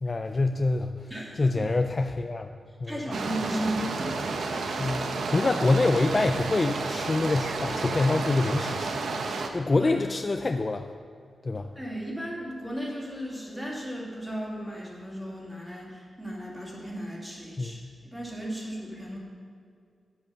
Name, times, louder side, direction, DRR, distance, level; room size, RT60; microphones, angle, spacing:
voice 1, 0.0-1.1 1.4-2.5 2.8-3.0 4.8-9.0 9.5-10.8 11.4-11.7 17.6-17.9, left 3 dB, 30° left, 6 dB, 0.4 m, -26 dB
voice 2, 1.1-1.7 2.8-4.1 9.8-9.9 11.5-19.2, equal, 10° right, -4 dB, 2.4 m, -35 dB
sound 1, 3.1-9.5, right 3 dB, 80° right, 0.9 m, -31 dB
9.5 x 8.0 x 6.8 m, 2.2 s
wide cardioid pair, 145°, 0 cm